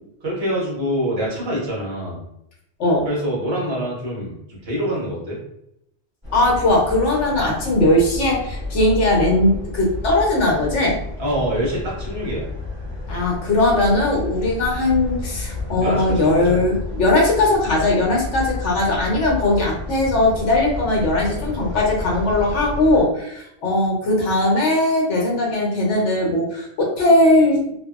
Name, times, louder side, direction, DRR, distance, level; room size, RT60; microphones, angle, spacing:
voice 1, 0.2-2.2 3.0-5.4 11.2-12.5 15.7-16.8, equal, 60° right, -5 dB, 1.2 m, -25 dB
sound 1, 6.2-23.0, left 2 dB, 25° right, 1.3 m, -31 dB
voice 2, 6.3-11.0 13.1-27.6, left 2 dB, 80° left, -1 dB, 1.0 m, -19 dB
2.7 x 2.2 x 2.3 m, 0.77 s
omnidirectional pair, 1.2 m